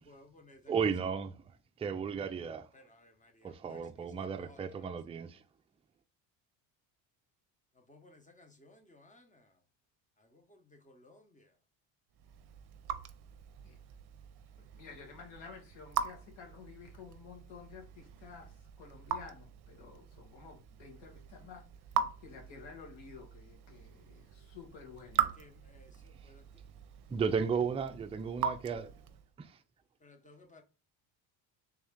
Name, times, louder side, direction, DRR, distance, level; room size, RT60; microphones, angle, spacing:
voice 1, 0.0-0.7 2.7-4.9 7.7-9.6 10.2-11.5 25.1-26.5 30.0-30.6, left 2 dB, 15° left, 1.0 m, -60 dB
voice 2, 0.7-1.3 1.8-2.7 3.4-5.4 27.1-28.9 29.4-29.6, right 6 dB, 15° right, 0.4 m, -34 dB
Raindrop / Drip, 12.1-29.3, right 8 dB, 55° right, 0.6 m, -41 dB
voice 3, 14.6-21.6 22.2-25.2, left 6 dB, 70° left, 1.9 m, -52 dB
3.5 x 3.1 x 3.6 m
supercardioid pair, 80°, 47 cm